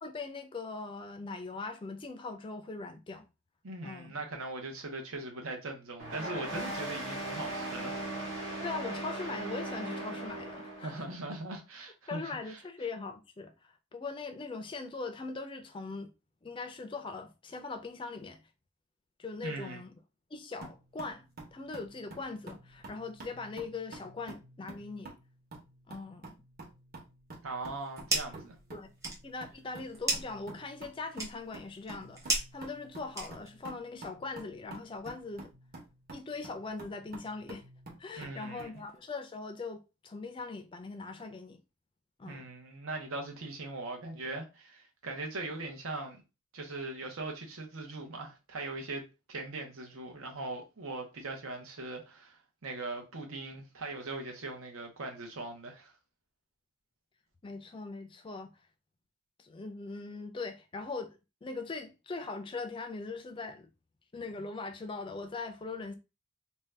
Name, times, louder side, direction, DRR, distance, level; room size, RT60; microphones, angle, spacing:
voice 1, 0.0-3.2 3.8-4.2 8.6-11.0 12.1-16.1 16.4-18.4 19.2-19.9 20.3-21.2 21.5-25.2 25.9-26.3 28.7-28.9 29.2-35.5 36.1-37.6 38.0-41.6 42.2-42.5 57.4-58.5 59.4-63.7 64.1-65.9, left 3 dB, 25° left, 0.4 m, -41 dB
voice 2, 3.6-8.0 8.5-8.6 10.8-12.6 19.4-19.8 27.4-28.5 38.2-38.8 42.2-46.2 46.5-55.9, right 2 dB, 85° right, 0.8 m, -40 dB
sound 1, 6.0-11.1, right 1 dB, 60° right, 1.1 m, -38 dB
sound 2, 20.6-38.8, right 2 dB, 45° right, 1.0 m, -50 dB
sound 3, 27.6-28.5 28.8-33.7, right 2 dB, 15° right, 0.7 m, -36 dB
2.6 x 2.2 x 3.3 m
head